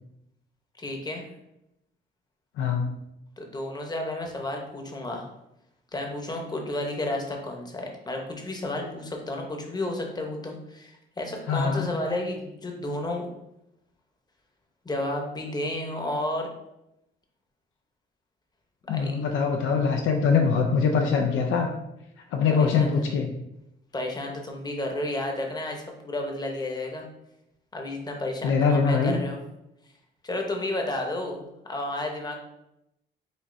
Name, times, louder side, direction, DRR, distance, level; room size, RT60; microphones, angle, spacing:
voice 1, 0.8-1.2 3.4-5.3 5.9-13.3 14.8-16.5 18.9-19.1 22.5-23.0 23.9-27.1 27.7-29.4 30.2-32.4, left 1 dB, 20° left, 2 dB, 0.8 m, -32 dB
voice 2, 2.6-3.0 11.5-11.9 18.9-21.7 22.3-23.3 28.4-29.2, left 5 dB, 80° left, 2 dB, 0.5 m, -23 dB
5.1 x 2.5 x 2.6 m, 0.85 s
cardioid pair, 90°, 20 cm